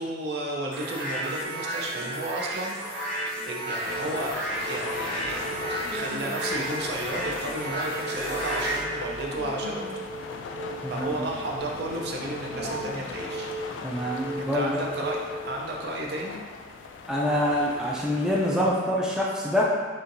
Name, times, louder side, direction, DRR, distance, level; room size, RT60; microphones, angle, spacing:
voice 1, 0.0-4.4 4.7-10.0 10.9-13.5 14.4-15.2 15.4-16.4, right 1 dB, 60° right, -1 dB, 0.5 m, -33 dB
sound 1, 0.7-8.8, right 1 dB, 85° right, 1.2 m, -32 dB
sound 2, 2.8-15.8, right 1 dB, 30° right, 0.7 m, -38 dB
sound 3, 3.8-18.7, left 4 dB, 85° left, 0.3 m, -39 dB
voice 2, 10.8-11.2 13.8-14.8 17.1-19.6, equal, 5° right, -5 dB, 0.3 m, -26 dB
4.4 x 2.7 x 2.6 m, 1.4 s
head